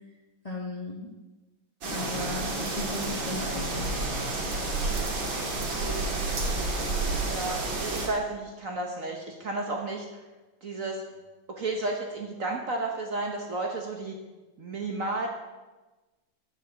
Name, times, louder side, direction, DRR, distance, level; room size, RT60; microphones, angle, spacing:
voice 1, 0.4-1.1 1.9-3.9, left 2 dB, 20° left, -1 dB, 1.2 m, -36 dB
sound 1, 1.8-8.1, right 2 dB, 70° right, 2.6 m, -30 dB
voice 2, 5.5-6.1 7.2-10.2 10.6-11.0 11.5-14.1 14.6-15.3, right 2 dB, 45° right, 1 dB, 1.3 m, -32 dB
10.0 x 7.0 x 6.9 m, 1.2 s
omnidirectional pair, 2.2 m